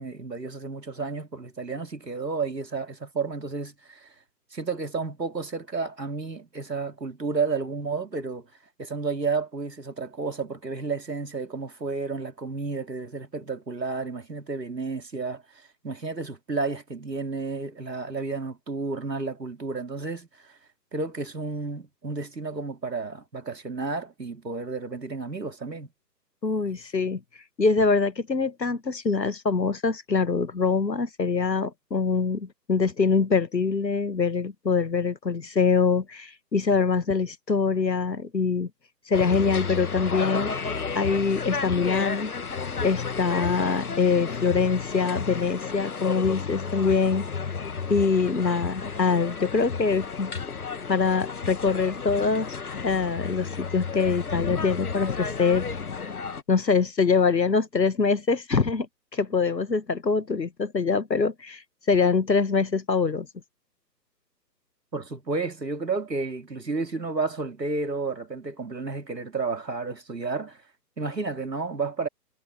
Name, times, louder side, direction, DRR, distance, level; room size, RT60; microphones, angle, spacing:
voice 1, 0.0-4.1 4.5-8.5 8.8-15.4 15.8-20.3 20.9-25.9 64.9-70.6 71.0-72.1, right 4 dB, 75° right, 3.5 m, -31 dB
voice 2, 26.4-27.2 27.6-38.7 39.1-40.5 40.9-42.3 42.8-47.3 47.9-50.3 50.9-52.6 52.8-55.7 56.5-58.9 59.1-61.6 61.9-63.3, left 4 dB, 80° left, 1.5 m, -24 dB
sound 1, 39.1-56.4, left 5 dB, 60° left, 2.2 m, -32 dB
figure-of-eight pair, 140°, 50 cm